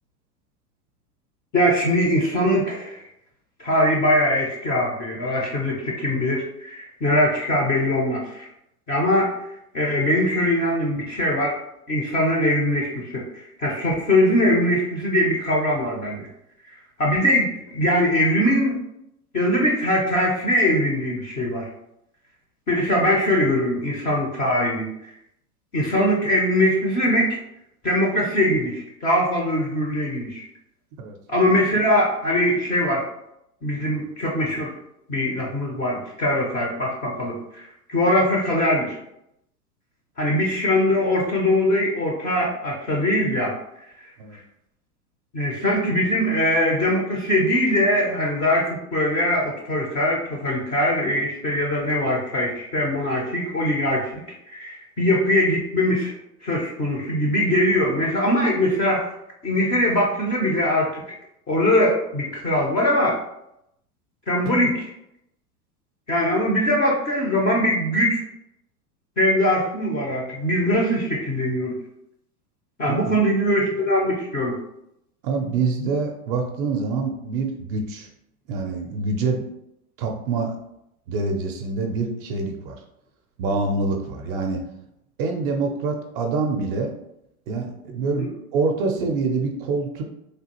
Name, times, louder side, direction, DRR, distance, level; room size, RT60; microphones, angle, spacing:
voice 1, 1.5-3.0 3.6-8.5 8.9-9.3 9.7-11.6 11.9-16.3 17.0-18.8 19.3-21.7 22.7-25.1 25.7-27.4 27.8-30.5 31.3-33.1 33.6-34.7 35.1-39.0 40.2-43.6 45.3-54.1 54.5-56.1 56.4-59.0 59.4-61.2 61.5-63.2 64.3-64.9 66.1-68.2 69.2-71.8 72.8-74.6 88.2-88.3, left 1 dB, 20° left, -2 dB, 0.4 m, -22 dB
voice 2, 72.9-73.2 75.2-78.1 78.5-79.4 80.0-80.6 81.1-82.8 83.4-84.6 85.2-86.9 87.5-90.0, right 4 dB, 40° right, 3 dB, 0.4 m, -26 dB
3.3 x 2.3 x 2.8 m, 0.80 s
hypercardioid pair, 115°, 46 cm